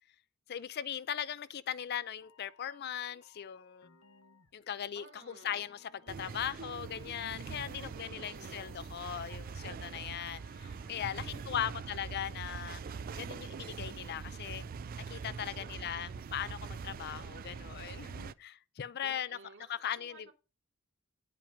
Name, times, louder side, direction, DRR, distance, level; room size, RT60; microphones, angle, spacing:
voice 1, 0.5-3.9 4.5-12.8 13.1-14.6 15.1-19.4 19.7-20.3, left 9 dB, 50° left, 0.4 m, -39 dB
sound 1, 1.8-11.7, left 4 dB, 80° left, 1.1 m, -64 dB
voice 2, 4.9-5.7 7.7-8.9 11.2-12.3 15.6-16.3 19.0-20.3, right 4 dB, 60° right, 2.6 m, -56 dB
sound 2, 6.1-18.3, right 5 dB, 40° right, 0.3 m, -43 dB
10.0 x 5.8 x 5.1 m
head